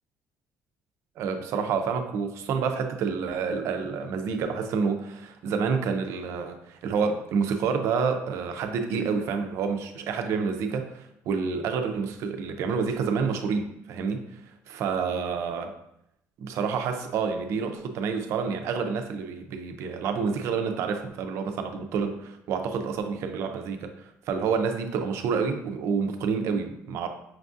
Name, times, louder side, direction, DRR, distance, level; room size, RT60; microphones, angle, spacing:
voice 1, 1.2-14.2 14.7-15.7 16.4-27.1, right 5 dB, 60° right, 6 dB, 0.4 m, -28 dB
5.8 x 2.4 x 2.5 m, 0.79 s
cardioid pair, 170°, 5 cm